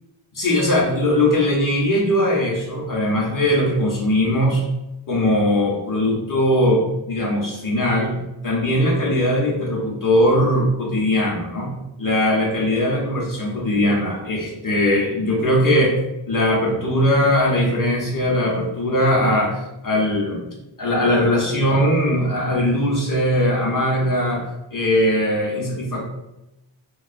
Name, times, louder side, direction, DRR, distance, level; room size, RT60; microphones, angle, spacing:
voice 1, 0.4-4.6 5.1-16.0 16.3-20.5 20.8-24.4 24.7-26.0, left 1 dB, 40° left, -3 dB, 0.7 m, -20 dB
2.3 x 2.2 x 2.4 m, 0.95 s
wide cardioid pair, 70°, 49 cm